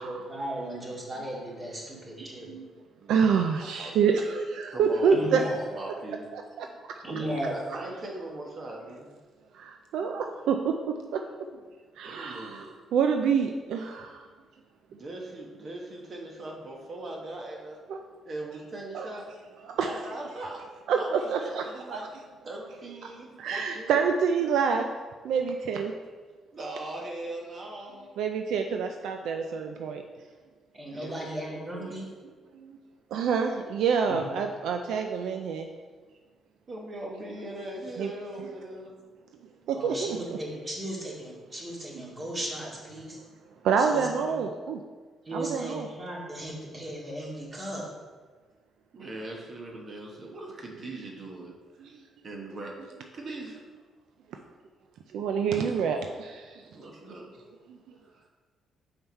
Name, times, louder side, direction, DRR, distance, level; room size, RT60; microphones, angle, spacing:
voice 1, 0.0-2.5 5.1-5.5 7.0-7.5 30.7-32.1 34.1-34.2 39.7-43.2 43.8-44.3 45.2-47.8, right 1 dB, 30° right, -3 dB, 2.1 m, -36 dB
voice 2, 3.1-5.4 6.3-6.7 9.5-11.2 12.0-14.2 17.9-18.0 18.9-19.2 19.7-19.9 20.9-21.6 21.9-22.0 23.0-23.1 23.4-24.9 25.2-25.9 28.2-30.0 32.6-32.8 33.1-35.7 38.0-38.1 38.4-38.5 39.7-40.2 43.6-44.8 45.3-45.9 51.8-51.9 55.1-56.6, right 6 dB, 80° right, 5 dB, 0.4 m, -27 dB
voice 3, 3.6-3.9 4.7-6.3 7.0-9.2 12.0-12.7 14.9-17.8 18.2-19.3 19.8-20.7 20.9-22.1 22.4-23.9 26.5-28.1 30.9-31.1 31.5-32.0 36.7-39.0 48.9-51.5 51.8-51.9 52.2-52.8 53.1-53.6 55.5-55.6 56.7-57.3 58.0-58.3, right 2 dB, 45° right, 0 dB, 1.3 m, -40 dB
5.6 x 5.5 x 4.4 m, 1.4 s
cardioid pair, 90°, 0 cm